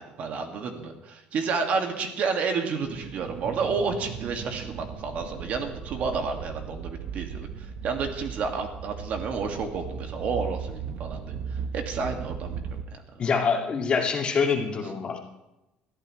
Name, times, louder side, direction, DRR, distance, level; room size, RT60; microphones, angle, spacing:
voice 1, 0.0-7.5 7.8-11.4 11.7-12.6, right 5 dB, 50° right, 4 dB, 2.1 m, -30 dB
sound 1, 2.8-12.8, right 7 dB, 70° right, 1.1 m, -37 dB
voice 2, 13.2-15.2, left 5 dB, 35° left, 1 dB, 2.2 m, -25 dB
21.0 x 13.5 x 3.2 m, 0.94 s
cardioid pair, 125°, 3 cm